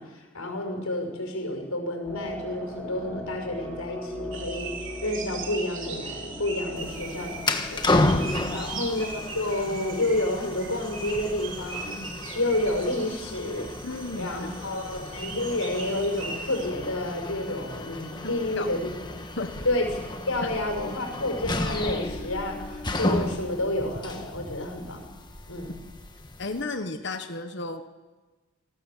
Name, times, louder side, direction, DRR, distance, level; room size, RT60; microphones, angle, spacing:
voice 1, 0.0-4.7 5.0-7.9 8.5-12.0 12.3-13.7 14.2-18.9 19.6-20.0 20.3-25.0 25.5-25.7, left 1 dB, 80° left, 2 dB, 6.3 m, -30 dB
sound 1, 2.0-8.6, equal, ahead, 4.9 m, -39 dB
sound 2, 4.3-16.7, right 4 dB, 60° right, 3.1 m, -40 dB
sound 3, 6.8-26.6, left 2 dB, 20° left, 1.4 m, -32 dB
voice 2, 8.4-8.7 13.8-14.7 18.2-18.7 19.4-19.5 26.4-27.9, left 3 dB, 55° left, 7 dB, 1.3 m, -34 dB
26.5 x 18.5 x 7.5 m, 1.3 s
head